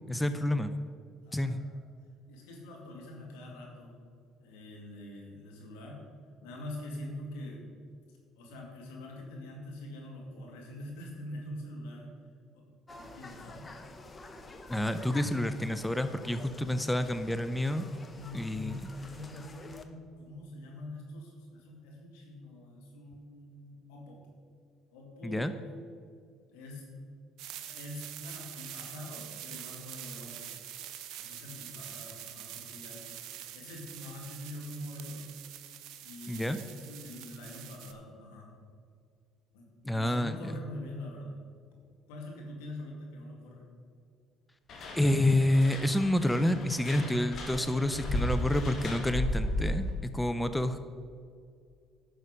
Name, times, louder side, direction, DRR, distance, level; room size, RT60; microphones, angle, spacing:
voice 1, 0.1-0.7 1.3-1.6 14.7-17.9 18.3-18.8 25.2-25.5 36.3-36.6 39.8-40.6 44.9-50.8, left 1 dB, 10° left, 10 dB, 0.6 m, -28 dB
voice 2, 1.2-1.8 2.3-4.0 4.4-6.1 6.4-7.7 8.1-12.1 12.5-12.7 12.9-13.7 18.2-24.3 24.9-25.8 26.5-27.0 27.5-30.5 31.2-35.2 36.0-38.6 39.5-41.4 42.1-43.7, left 1 dB, 80° left, -1 dB, 2.2 m, -45 dB
sound 1, 12.9-19.8, left 2 dB, 30° left, 1.0 m, -49 dB
sound 2, 27.4-37.9, right 11 dB, 65° right, 0.7 m, -45 dB
sound 3, 44.7-49.9, left 1 dB, 55° left, 1.9 m, -35 dB
11.0 x 6.4 x 5.0 m, 2.3 s
hypercardioid pair, 60°, 0 cm